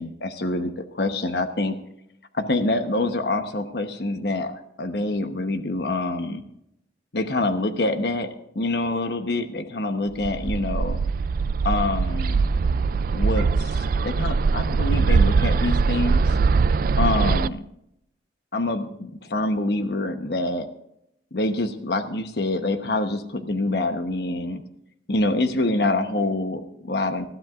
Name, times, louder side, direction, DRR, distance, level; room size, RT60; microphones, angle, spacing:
voice 1, 0.0-1.8 2.3-6.4 7.1-8.3 8.5-11.0 11.6-12.4 13.1-16.4 17.0-17.7 18.5-20.7 21.3-24.6 25.1-27.2, left 2 dB, 65° left, 7 dB, 1.0 m, -26 dB
Bird, 10.2-17.5, right 4 dB, 55° right, 0.3 m, -21 dB
20.0 x 13.5 x 2.5 m, 0.77 s
head